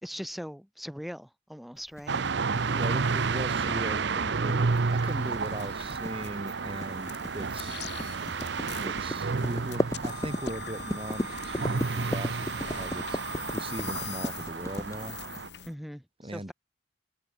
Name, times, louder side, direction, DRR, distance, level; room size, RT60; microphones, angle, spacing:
voice 1, 0.0-2.2 15.6-16.5, equal, ahead, 3.3 m, -40 dB
sound 1, 2.0-15.7, left 1 dB, 15° left, 1.0 m, -36 dB
sound 2, 2.1-15.5, right 4 dB, 60° right, 0.6 m, -31 dB
voice 2, 2.7-7.8 8.6-15.2 16.2-16.5, right 1 dB, 30° right, 3.1 m, -39 dB
sound 3, 4.2-15.7, left 7 dB, 60° left, 2.7 m, -44 dB
head